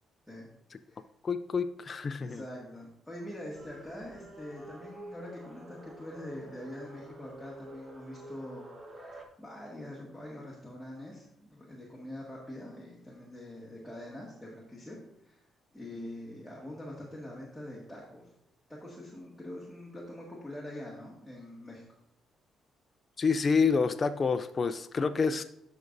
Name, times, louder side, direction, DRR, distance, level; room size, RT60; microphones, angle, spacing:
voice 1, 1.2-2.4 23.2-25.4, left 5 dB, 40° left, 9 dB, 0.4 m, -28 dB
voice 2, 2.2-8.7 9.4-15.0 15.2-15.4 15.7-18.3 18.8-21.8, left 1 dB, ahead, -5 dB, 1.8 m, -44 dB
sound 1, 3.5-9.2, right 1 dB, 35° right, 1.4 m, -48 dB
13.0 x 5.3 x 2.6 m, 0.79 s
cardioid pair, 90°, 0 cm